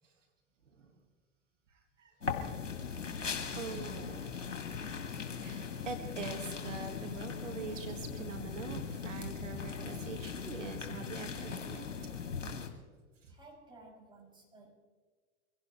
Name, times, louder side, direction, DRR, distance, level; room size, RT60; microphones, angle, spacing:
voice 1, 0.6-1.0 1.7-3.2 3.5-11.9 13.2-13.4, right 4 dB, 80° right, 6 dB, 1.7 m, -44 dB
sound 1, 2.2-12.7, left 6 dB, 85° left, 2.3 m, -39 dB
voice 2, 13.3-14.7, right 2 dB, 15° right, -3 dB, 6.5 m, -56 dB
24.5 x 17.0 x 3.1 m, 1.5 s
hypercardioid pair, 90°, 36 cm